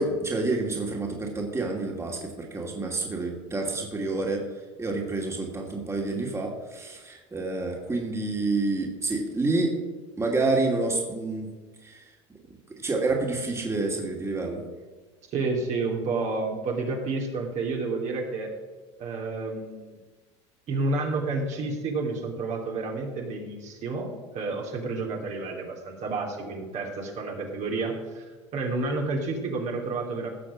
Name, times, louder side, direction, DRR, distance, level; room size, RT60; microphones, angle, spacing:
voice 1, 0.0-4.4 4.8-9.7 10.2-11.5 11.8-12.0 12.8-14.6, right 3 dB, 15° right, 0 dB, 2.7 m, -28 dB
voice 2, 15.3-18.5 19.0-20.0 20.7-28.2 28.5-30.3, right 3 dB, 50° right, 0 dB, 3.1 m, -30 dB
17.0 x 6.4 x 6.3 m, 1.3 s
hypercardioid pair, 85°, 16 cm